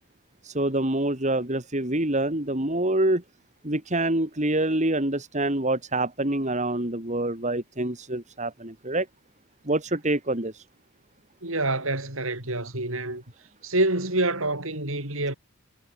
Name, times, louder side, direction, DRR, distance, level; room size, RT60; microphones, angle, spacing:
voice 1, 0.4-3.2 3.6-9.1 9.6-10.6, right 1 dB, 35° right, 3.3 m, -26 dB
voice 2, 11.4-13.2 13.6-15.3, right 2 dB, 65° right, 6.6 m, -27 dB
head